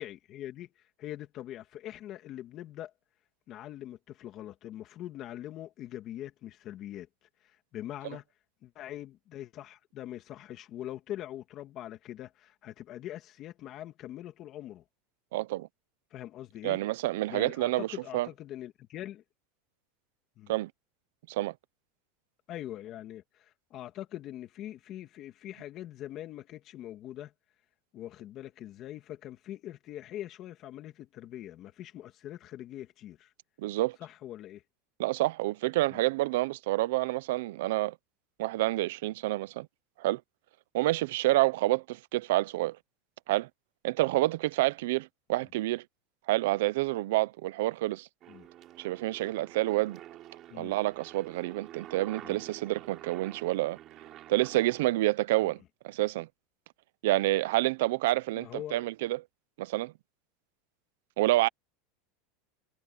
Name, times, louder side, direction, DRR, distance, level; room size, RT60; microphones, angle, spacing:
voice 1, 0.0-2.9 3.5-7.1 7.4-8.2 8.6-14.8 16.1-16.8 17.3-19.2 20.4-20.5 22.5-27.3 27.9-33.3 34.0-34.6 35.9-36.0 48.3-48.5 50.5-50.7 52.2-52.4 55.4-55.5 58.3-58.9, left 12 dB, 40° left, 2.4 m, -43 dB
voice 2, 15.3-15.7 16.6-17.9 18.1-18.3 20.5-20.7 21.3-21.5 33.6-34.0 35.0-37.9 38.4-39.7 40.0-40.2 40.7-42.8 43.3-43.5 43.8-45.8 46.3-48.1 48.8-50.0 50.6-53.8 54.3-56.3 57.0-59.2 59.6-59.9 61.2-61.5, right 18 dB, 75° right, 0.7 m, -28 dB
Aircraft, 48.2-54.9, right 13 dB, 40° right, 4.4 m, -48 dB
supercardioid pair, 145°, 0 cm